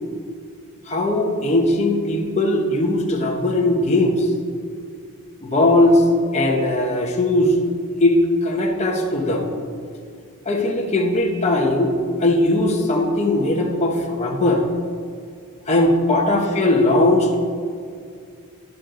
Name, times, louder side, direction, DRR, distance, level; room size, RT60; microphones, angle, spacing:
voice 1, 0.9-4.3 5.4-6.1 6.3-7.6 8.0-9.5 10.4-11.9 12.2-14.6 15.7-17.4, left 1 dB, 30° left, -1 dB, 1.0 m, -19 dB
12.0 x 11.0 x 3.8 m, 2.3 s
head